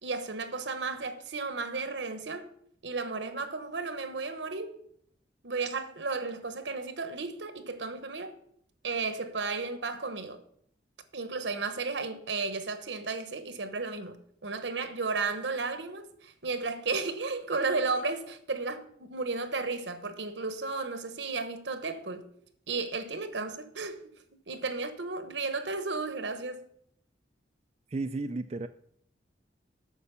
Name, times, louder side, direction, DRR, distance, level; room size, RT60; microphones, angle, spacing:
voice 1, 0.0-2.5 2.8-4.8 5.4-8.3 8.8-10.4 11.1-22.3 22.7-24.0 24.5-26.6, right 4 dB, 75° right, 1.1 m, -34 dB
voice 2, 27.9-28.7, right 3 dB, 35° right, 0.4 m, -33 dB
8.4 x 6.3 x 7.0 m
head